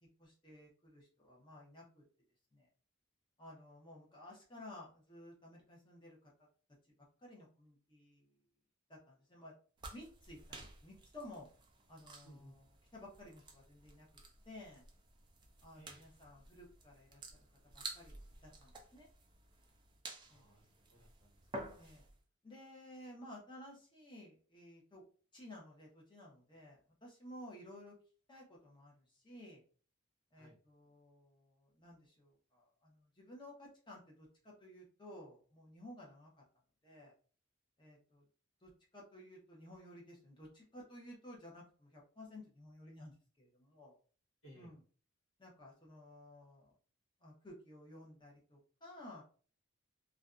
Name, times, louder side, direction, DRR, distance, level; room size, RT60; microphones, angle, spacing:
voice 1, 0.2-2.0 2.5-2.7 3.4-6.3 7.2-8.4 8.9-9.5 9.9-11.5 11.9-12.6 12.9-14.1 14.5-14.8 15.6-17.2 17.7-18.2 18.4-19.1 20.3-20.5 21.8-22.0 22.4-25.0 25.3-28.0 28.3-29.6 30.3-36.3 36.8-37.1 37.8-38.2 38.6-43.9 44.6-44.8 45.4-46.7 47.2-49.2, left 1 dB, 20° left, -2 dB, 0.7 m, -55 dB
sound 1, 9.8-22.2, right 2 dB, 20° right, 0.3 m, -52 dB
voice 2, 12.2-12.6 15.7-16.1 20.3-21.8 30.3-30.6 44.4-44.7, right 1 dB, 80° left, -3 dB, 1.2 m, -61 dB
2.5 x 2.2 x 2.4 m, 0.41 s
head